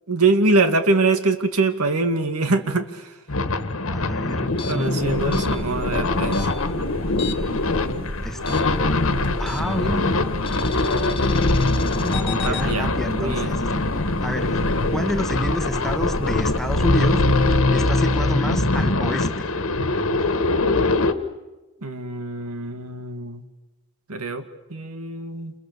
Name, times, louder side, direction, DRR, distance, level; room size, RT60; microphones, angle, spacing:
voice 1, 0.1-3.2 3.9-4.1 4.7-6.5 12.4-12.9 13.2-13.6 21.8-23.4 24.1-25.5, right 3 dB, 90° right, 8 dB, 2.2 m, -23 dB
sound 1, 3.3-21.1, left 2 dB, 65° left, 1.5 m, -23 dB
voice 2, 3.9-5.4 8.2-8.7 9.4-10.1 11.9-13.8 14.2-14.6 14.9-17.2 17.7-19.5, equal, ahead, 7 dB, 1.2 m, -29 dB
sound 2, 4.5-7.6 7.9-9.9 10.5-12.7, left 7 dB, 25° left, 1.9 m, -36 dB
sound 3, 5.0-17.6, equal, 40° right, 1.7 m, -33 dB
29.0 x 28.5 x 6.9 m, 1.1 s
head